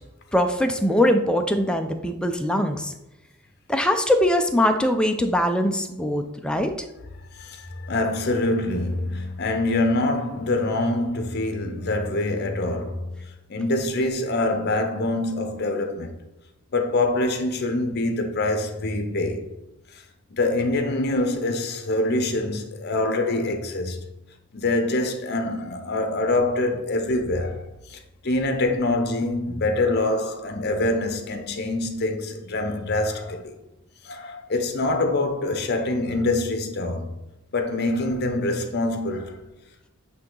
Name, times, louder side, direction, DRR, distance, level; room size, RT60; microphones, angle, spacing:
voice 1, 0.3-2.9 3.7-6.7, left 1 dB, 5° left, 0.5 m, -22 dB
voice 2, 7.4-13.1 13.5-16.1 16.7-19.5 20.3-24.0 24.5-27.6 27.9-28.0 28.2-33.5 34.0-37.1 37.5-39.4, left 2 dB, 55° left, 0.8 m, -25 dB
8.6 x 2.9 x 3.8 m
head